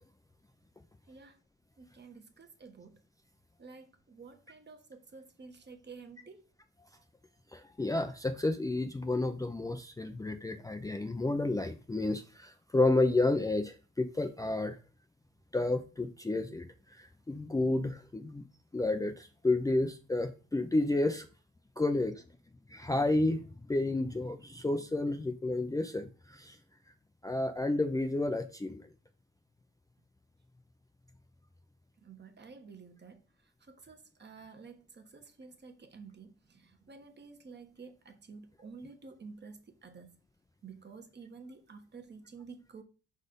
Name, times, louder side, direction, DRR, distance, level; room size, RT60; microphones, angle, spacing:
voice 1, 1.8-3.0 3.6-6.4 32.0-33.2 33.7-40.1 40.6-42.8, right 4 dB, 35° right, 1.3 m, -51 dB
voice 2, 7.5-14.8 15.5-18.4 18.7-21.3 21.8-22.2 22.7-26.6 27.2-28.9, left 2 dB, 10° left, 0.5 m, -31 dB
5.1 x 4.3 x 5.2 m
cardioid pair, 90°, 30 cm